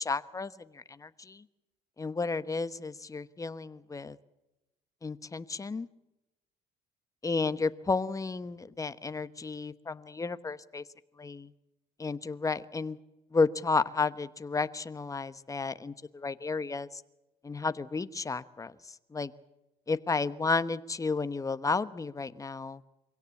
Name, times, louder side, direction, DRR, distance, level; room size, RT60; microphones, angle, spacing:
voice 1, 0.0-1.4 2.0-4.2 5.0-5.9 7.2-10.8 11.2-11.5 12.0-13.0 13.3-17.0 17.4-19.3 19.9-22.8, left 4 dB, 20° left, 14 dB, 1.1 m, -32 dB
24.5 x 17.0 x 8.3 m, 0.96 s
cardioid pair, 110°, 17 cm